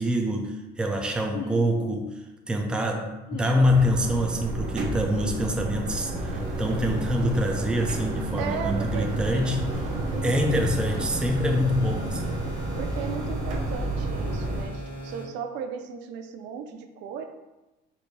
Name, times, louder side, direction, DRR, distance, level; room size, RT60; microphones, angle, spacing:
voice 1, 0.0-2.1 2.5-6.3 6.6-9.6 10.2-12.3, equal, 5° right, 2 dB, 0.4 m, -25 dB
sound 1, 1.3-1.6 3.3-3.7 5.1-5.4 7.2-7.4 9.3-9.7 11.8-12.0, left 6 dB, 55° left, 0.6 m, -38 dB
sound 2, 3.6-14.6, right 1 dB, 40° right, 0.7 m, -30 dB
sound 3, 6.1-15.2, equal, 30° left, 1.4 m, -38 dB
voice 2, 8.4-9.1 10.1-10.7 12.7-17.2, right 7 dB, 75° right, 6 dB, 0.5 m, -36 dB
4.3 x 2.6 x 4.6 m, 1.0 s
cardioid pair, 155°, 19 cm